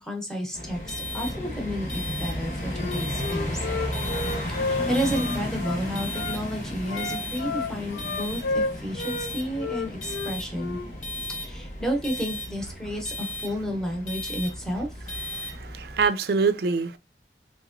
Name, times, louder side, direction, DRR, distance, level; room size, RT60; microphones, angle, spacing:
voice 1, 0.0-3.6 4.5-10.8 11.4-15.1, equal, 5° left, 0.8 m, -31 dB
sound 1, 0.5-16.1, left 1 dB, 45° left, 1.0 m, -33 dB
Wind instrument woodwind instrument, 2.7-6.4 6.9-9.3 9.6-10.9, left 3 dB, 70° left, 0.5 m, -31 dB
voice 2, 15.3-17.0, right 4 dB, 60° right, 0.4 m, -25 dB
3.6 x 2.9 x 2.5 m
head